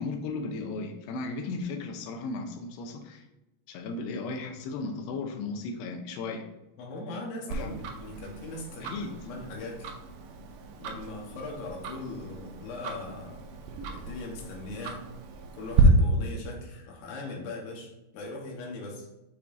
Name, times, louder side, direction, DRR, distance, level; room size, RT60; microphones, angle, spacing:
voice 1, 0.0-3.2 3.7-6.5 7.5-7.9 8.8-9.2, left 3 dB, 85° left, 5 dB, 2.8 m, -35 dB
voice 2, 6.8-9.0 9.2-9.9 10.8-13.4 13.9-15.0 15.5-19.1, left 2 dB, 70° left, 0 dB, 2.8 m, -39 dB
Tick-tock, 7.5-15.8, right 8 dB, 85° right, 2.0 m, -34 dB
6.9 x 5.4 x 2.6 m, 0.97 s
omnidirectional pair, 4.8 m